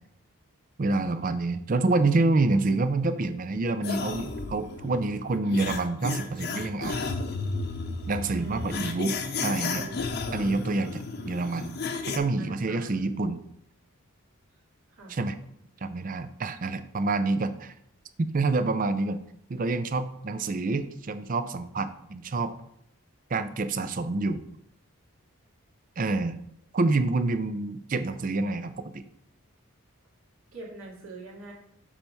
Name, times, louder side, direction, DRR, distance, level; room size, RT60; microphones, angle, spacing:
voice 1, 0.8-7.1 8.1-9.2 9.4-9.9 10.3-11.8 12.1-13.4 15.1-15.4 15.8-17.7 18.3-19.2 19.5-22.5 23.3-24.4 26.0-26.4 26.7-29.0, right 3 dB, 40° right, 11 dB, 0.4 m, -27 dB
sound 1, 3.8-12.2, left 4 dB, 50° left, 0.6 m, -33 dB
voice 2, 8.3-8.8 9.8-10.0 10.3-10.4 12.4-12.9 14.9-15.2 30.5-31.5, right 2 dB, 70° right, -4 dB, 2.4 m, -43 dB
7.2 x 3.4 x 5.4 m, 0.72 s
head